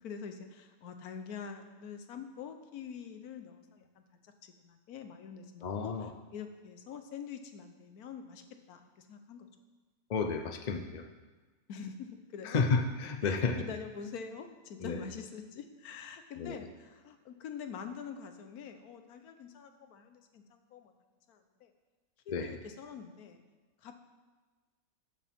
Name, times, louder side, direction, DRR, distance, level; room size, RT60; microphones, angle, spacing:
voice 1, 0.0-8.4 8.7-9.5 11.7-12.6 13.2-20.9 21.3-21.7 22.3-23.4 23.8-23.9, left 6 dB, 90° left, 7 dB, 1.3 m, -45 dB
voice 2, 5.6-6.1 10.1-11.1 12.4-13.6 14.8-15.0 16.4-16.7 22.3-22.6, left 4 dB, 50° left, 5 dB, 0.5 m, -32 dB
12.5 x 7.3 x 3.6 m, 1.3 s
omnidirectional pair, 1.5 m